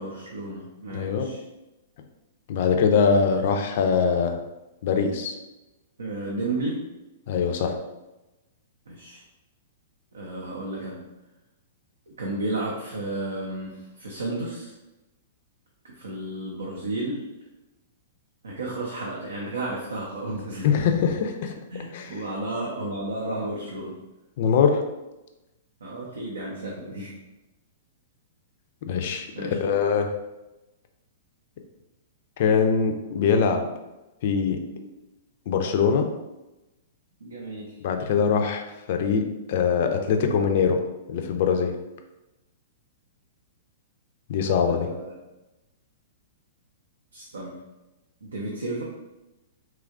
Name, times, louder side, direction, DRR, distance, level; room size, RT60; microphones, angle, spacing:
voice 1, 0.0-1.4 6.0-6.8 8.9-9.2 10.1-11.0 12.2-14.7 15.9-17.3 18.4-20.9 21.7-24.0 25.8-27.1 29.3-29.8 34.7-34.9 37.2-37.7 44.7-45.1 47.1-47.6 48.2-48.8, right 2 dB, 75° right, -3 dB, 0.5 m, -32 dB
voice 2, 0.9-1.3 2.5-4.4 4.8-5.4 7.3-7.7 20.6-21.5 21.9-22.2 24.4-24.8 28.8-30.1 32.4-33.7 34.2-34.6 35.5-36.1 37.8-40.8 41.1-41.7 44.3-44.9, left 6 dB, 55° left, 5 dB, 0.3 m, -23 dB
2.9 x 2.4 x 2.4 m, 1.0 s
figure-of-eight pair, 110°, 0 cm